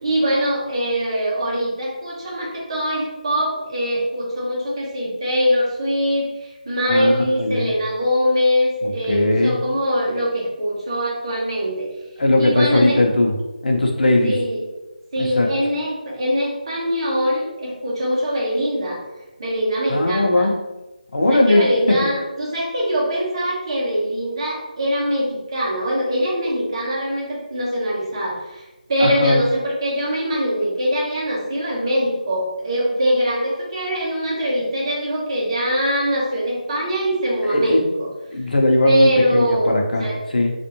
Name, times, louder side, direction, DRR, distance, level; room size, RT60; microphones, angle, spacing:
voice 1, 0.0-11.9 12.4-13.0 14.2-14.6 15.1-19.0 19.4-20.5 21.3-38.1 38.8-39.7 40.0-40.2, equal, 35° right, -4 dB, 1.0 m, -22 dB
voice 2, 7.4-7.7 8.8-9.6 12.2-13.3 13.6-14.3 15.2-15.5 19.9-20.5 21.1-21.6 29.0-29.4 37.4-37.8 38.3-40.0 40.3-40.5, left 2 dB, 75° left, 1 dB, 0.7 m, -18 dB
3.4 x 2.5 x 2.9 m, 1.0 s
figure-of-eight pair, 170°, 5 cm